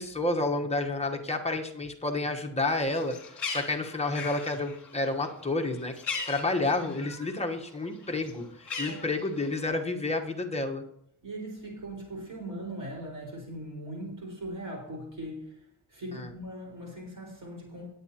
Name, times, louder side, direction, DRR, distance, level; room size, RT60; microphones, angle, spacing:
voice 1, 0.0-5.9 6.3-10.8 16.1-16.3, left 2 dB, 15° left, 2 dB, 1.1 m, -30 dB
Bird, 2.8-7.4 7.7-9.7, left 4 dB, 45° left, 2.4 m, -39 dB
voice 2, 8.9-9.3 11.2-17.9, right 1 dB, 50° right, -2 dB, 4.8 m, -40 dB
18.5 x 8.5 x 2.9 m, 0.72 s
wide cardioid pair, 160°, 42 cm